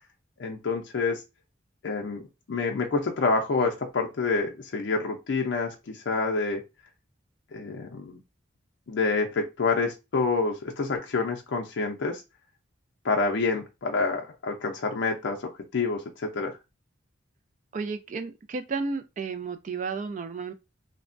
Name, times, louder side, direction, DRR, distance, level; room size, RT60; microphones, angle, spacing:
voice 1, 0.4-1.2 1.8-6.6 7.5-8.2 8.9-12.2 13.0-16.6, left 4 dB, 65° left, 0.4 m, -28 dB
voice 2, 17.7-20.5, right 4 dB, 40° right, 0.3 m, -32 dB
3.3 x 2.1 x 2.4 m
head